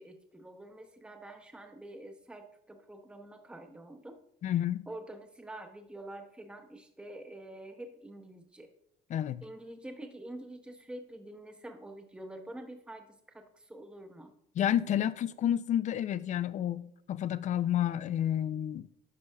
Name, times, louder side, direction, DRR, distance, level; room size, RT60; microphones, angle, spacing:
voice 1, 0.0-4.2 4.9-8.7 9.4-14.3, right 1 dB, 5° right, 0.7 m, -47 dB
voice 2, 4.4-4.9 9.1-9.4 14.6-18.9, left 10 dB, 45° left, 0.4 m, -30 dB
9.9 x 5.4 x 2.3 m
cardioid pair, 110°, 17 cm